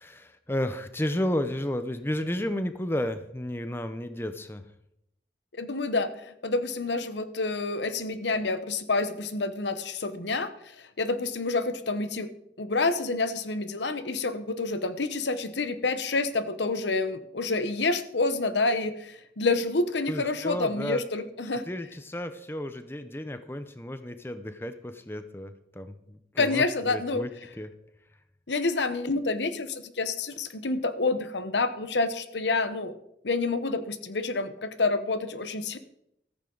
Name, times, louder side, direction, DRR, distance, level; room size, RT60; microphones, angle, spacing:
voice 1, 0.0-4.6 20.1-21.0 21.7-27.3 27.6-27.7, left 1 dB, 15° left, 10 dB, 0.7 m, -32 dB
voice 2, 5.6-12.3 12.6-21.6 26.4-27.2 28.5-32.9 33.2-35.8, left 3 dB, 85° left, 12 dB, 1.0 m, -28 dB
14.5 x 14.0 x 3.9 m, 0.79 s
head